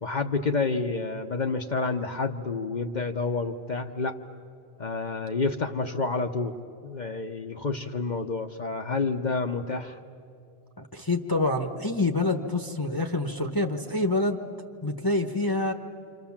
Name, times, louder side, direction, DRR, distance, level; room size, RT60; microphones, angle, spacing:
voice 1, 0.0-4.1 4.8-6.6 6.8-10.0, left 4 dB, 45° left, 5 dB, 0.9 m, -29 dB
voice 2, 10.8-14.4 14.8-15.7, left 2 dB, 20° left, 4 dB, 1.0 m, -26 dB
27.0 x 26.5 x 7.2 m, 2.5 s
omnidirectional pair, 1.1 m